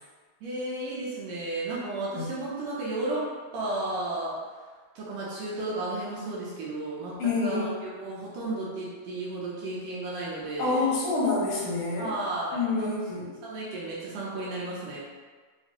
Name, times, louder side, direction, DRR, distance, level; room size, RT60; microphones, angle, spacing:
voice 1, 0.4-4.4 5.0-10.9 12.0-12.9 13.4-15.0, right 2 dB, 75° right, -7 dB, 2.1 m, -33 dB
voice 2, 7.2-7.7 10.6-12.1 12.5-13.3, left 3 dB, 80° left, -7 dB, 1.3 m, -27 dB
5.9 x 2.1 x 2.8 m, 1.5 s
omnidirectional pair, 4.1 m